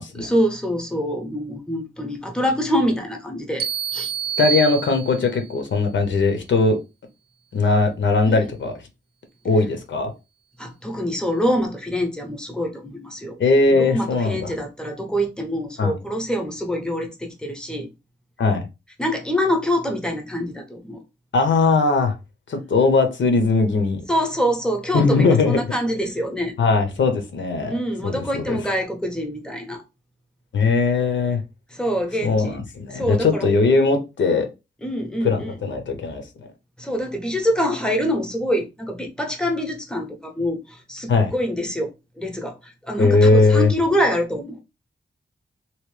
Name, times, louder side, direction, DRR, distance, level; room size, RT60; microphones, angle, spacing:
voice 1, 0.2-3.7 3.9-4.1 8.3-8.4 10.6-13.4 13.7-17.9 19.0-21.0 24.1-26.5 27.6-29.8 31.7-32.6 32.9-33.5 34.8-35.5 36.8-44.6, equal, 5° left, 0.8 m, -25 dB
sound 1, 3.6-5.5, right 8 dB, 55° right, 0.4 m, -27 dB
voice 2, 4.4-6.8 7.5-8.7 9.4-10.1 13.4-14.5 15.8-15.9 18.4-18.6 21.3-22.1 22.5-24.0 24.9-25.6 26.6-27.7 28.0-28.6 30.5-31.4 32.2-34.5 35.2-36.2 41.1-41.3 43.0-43.7, left 3 dB, 75° left, 0.8 m, -19 dB
3.0 x 2.8 x 3.2 m
wide cardioid pair, 145°, 19 cm